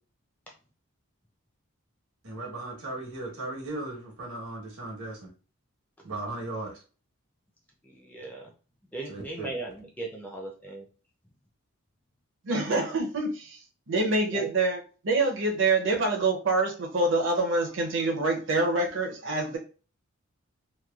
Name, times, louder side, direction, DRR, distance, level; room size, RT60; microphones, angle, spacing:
voice 1, 2.2-5.3 6.0-6.7 9.1-9.5, right 2 dB, 90° right, -2 dB, 1.1 m, -37 dB
voice 2, 7.8-8.5 8.9-10.9 14.3-14.5, right 2 dB, 5° left, 0 dB, 0.4 m, -38 dB
voice 3, 12.4-13.6 13.9-19.6, right 2 dB, 60° right, 0 dB, 0.6 m, -26 dB
3.0 x 2.2 x 2.3 m, 0.36 s
head